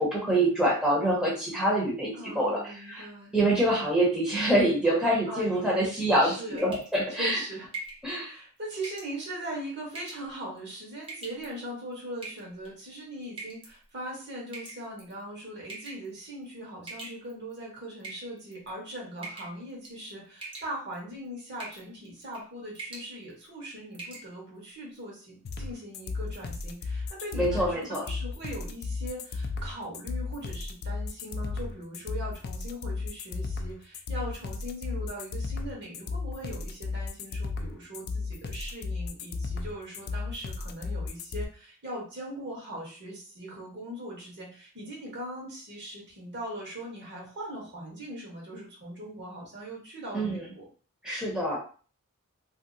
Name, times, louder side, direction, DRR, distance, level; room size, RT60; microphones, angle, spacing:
voice 1, 0.0-3.1 3.3-7.4 8.0-8.4 27.3-28.0 50.1-50.5 51.0-51.6, right 1 dB, 5° right, -5 dB, 0.8 m, -26 dB
voice 2, 2.1-3.3 5.3-5.8 6.2-6.6 7.1-7.7 8.2-50.7, right 1 dB, 50° right, -2 dB, 1.3 m, -40 dB
sound 1, 6.6-7.0 7.7-8.0 8.8-9.1 9.9-10.3 11.0-11.5 12.2-12.7 13.4-13.7 14.5-15.1 15.7-16.1 16.9-17.5 18.0-18.7 19.2-19.6 19.8-20.1 20.4-21.0 21.6-21.9 22.2-22.4 22.7-23.1 23.5-23.6 23.9-24.3, right 3 dB, 25° right, 0.8 m, -42 dB
sound 2, 25.4-41.4, left 4 dB, 45° left, 0.4 m, -34 dB
2.8 x 2.0 x 3.8 m, 0.39 s
head